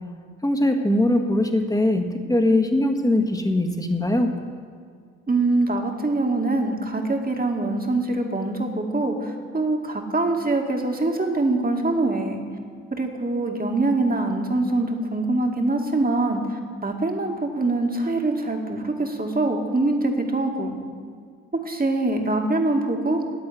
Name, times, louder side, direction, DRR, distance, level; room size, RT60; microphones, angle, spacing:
voice 1, 0.4-4.3, left 1 dB, 10° left, 4 dB, 1.9 m, -21 dB
voice 2, 5.3-12.4 12.9-20.8 21.7-23.2, right 2 dB, 20° right, 2 dB, 2.3 m, -24 dB
9.6 x 8.4 x 9.8 m, 2.1 s
hypercardioid pair, 45°, 39 cm